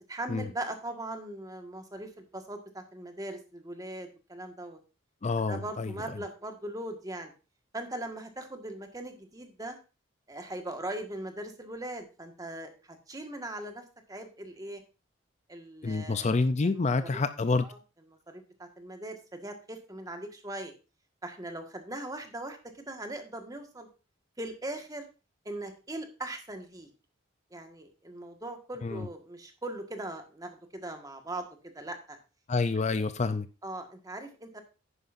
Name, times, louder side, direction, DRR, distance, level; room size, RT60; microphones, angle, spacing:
voice 1, 0.1-4.8 5.5-7.3 7.7-9.8 10.3-14.8 15.5-16.3 16.6-17.2 17.6-17.8 18.3-20.7 21.2-22.6 22.9-23.9 24.4-25.0 25.4-26.9 27.5-31.5 31.7-32.2 33.6-34.6, right 1 dB, 20° right, 1.6 m, -40 dB
voice 2, 5.2-6.2 15.8-17.7 28.8-29.1 32.5-33.5, left 3 dB, 35° left, 0.5 m, -28 dB
10.5 x 9.8 x 2.6 m
head